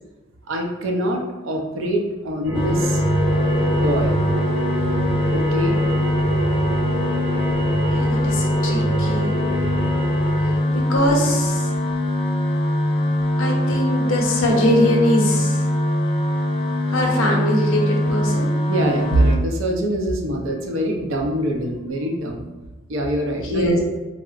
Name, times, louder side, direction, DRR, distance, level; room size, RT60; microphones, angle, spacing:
voice 1, 0.5-3.0 3.7-4.1 5.3-5.8 18.7-22.5 22.9-23.8, right 1 dB, 70° right, 2 dB, 0.5 m, -23 dB
sound 1, 2.4-10.6, right 1 dB, 90° right, 0.8 m, -26 dB
sound 2, 2.5-19.4, left 1 dB, 25° left, 0.3 m, -22 dB
voice 2, 7.9-9.3 10.7-11.7 13.4-15.6 16.9-18.5 23.4-23.8, left 1 dB, 80° left, 0 dB, 0.6 m, -22 dB
3.6 x 2.0 x 2.3 m, 1.1 s
head